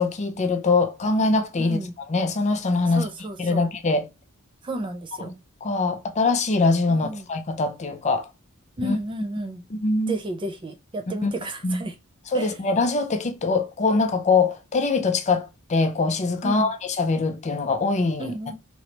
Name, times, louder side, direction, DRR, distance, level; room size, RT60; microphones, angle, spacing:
voice 1, 0.0-1.8 2.1-3.1 3.4-4.1 5.2-5.3 5.6-8.3 8.8-9.0 9.7-10.2 11.2-11.3 11.6-11.8 12.3-18.5, left 3 dB, 30° left, 0.5 m, -23 dB
voice 2, 1.6-1.9 2.9-3.7 4.6-5.3 6.9-7.3 8.8-9.6 10.1-11.9 12.3-12.6 16.4-16.7 18.2-18.5, right 1 dB, 20° right, 0.4 m, -32 dB
3.0 x 3.0 x 2.8 m
head